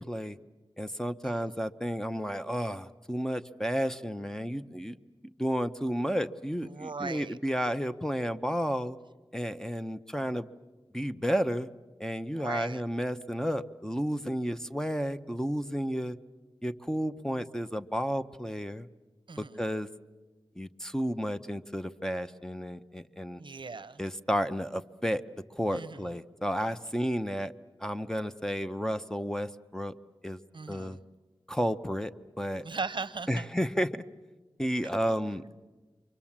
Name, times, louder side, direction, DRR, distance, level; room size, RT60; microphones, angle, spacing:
voice 1, 0.1-0.4 0.8-5.0 5.2-9.0 9.3-10.5 10.9-11.7 12.0-16.2 16.6-18.9 19.4-19.9 20.6-23.4 24.0-25.2 25.5-27.5 27.8-29.9 30.2-30.4 30.7-31.0 31.5-32.6 33.3-34.0 34.6-35.6, equal, 5° left, 10 dB, 0.9 m, -32 dB
voice 2, 6.7-7.4 12.4-12.8 19.3-19.7 23.4-24.0 25.7-26.1 30.5-31.0 32.6-33.5, right 4 dB, 60° right, 16 dB, 0.7 m, -38 dB
29.5 x 24.0 x 7.4 m, 1.2 s
wide cardioid pair, 60°, 9 cm